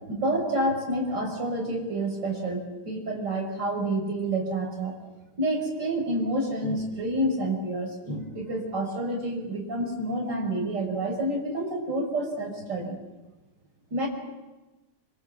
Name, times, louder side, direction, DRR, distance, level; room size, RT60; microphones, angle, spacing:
voice 1, 0.1-4.9 5.4-13.0 13.9-14.1, right 1 dB, 55° right, 1 dB, 5.9 m, -28 dB
26.5 x 25.0 x 7.8 m, 1.1 s
omnidirectional pair, 2.3 m